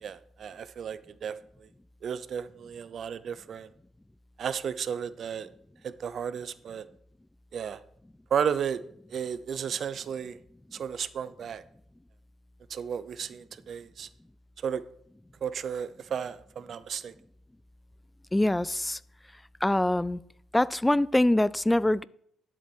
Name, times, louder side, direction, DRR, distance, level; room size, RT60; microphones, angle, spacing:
voice 1, 0.0-1.4 2.0-3.7 4.4-5.5 5.8-6.8 7.5-7.8 8.3-8.8 9.1-10.4 10.7-11.6 12.7-14.1 14.6-14.8 15.4-17.1, right 7 dB, 60° right, 0.6 m, -33 dB
voice 2, 18.3-19.0 19.6-20.2 20.5-22.0, left 1 dB, 10° left, 0.3 m, -24 dB
11.5 x 7.4 x 4.5 m
cardioid pair, 90°, 0 cm